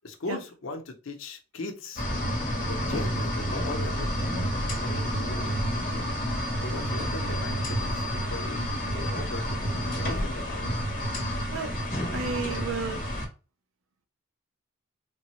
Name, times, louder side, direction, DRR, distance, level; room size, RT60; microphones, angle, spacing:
voice 1, 0.0-2.0 2.6-6.1 6.6-8.6 8.8-10.8, left 2 dB, 75° left, 0.7 m, -39 dB
sound 1, 2.0-13.3, equal, 40° left, 0.8 m, -29 dB
voice 2, 12.1-13.0, right 4 dB, 80° right, 0.5 m, -32 dB
3.5 x 2.0 x 2.9 m
head